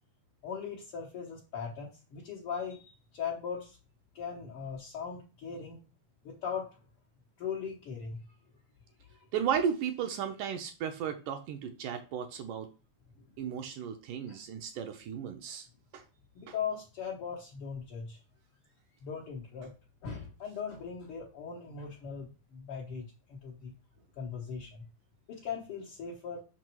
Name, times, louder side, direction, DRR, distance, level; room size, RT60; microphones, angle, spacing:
voice 1, 0.4-3.8 4.1-5.8 6.2-6.7 7.4-8.2 9.1-9.2 14.3-14.4 16.3-18.2 19.0-19.7 20.0-23.7 24.2-24.8 25.3-26.4, left 6 dB, 75° left, -3 dB, 1.3 m, -39 dB
voice 2, 9.3-12.7 13.4-15.7 15.9-16.0 16.5-16.6, right 8 dB, 80° right, 5 dB, 2.0 m, -34 dB
6.0 x 6.0 x 4.6 m, 0.33 s
omnidirectional pair, 4.3 m